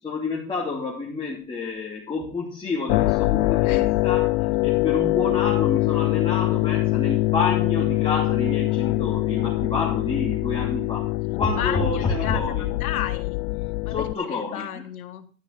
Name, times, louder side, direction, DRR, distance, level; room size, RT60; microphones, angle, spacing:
voice 1, 0.0-4.3 4.6-11.1 11.4-12.6 13.9-14.7, left 3 dB, 10° left, -4 dB, 3.1 m, -29 dB
sound 1, 2.9-14.1, left 21 dB, 45° left, 0.4 m, -23 dB
voice 2, 11.2-13.4 13.8-15.3, left 10 dB, 90° left, 9 dB, 1.6 m, -33 dB
12.0 x 6.3 x 6.6 m, 0.41 s
supercardioid pair, 130°, 42 cm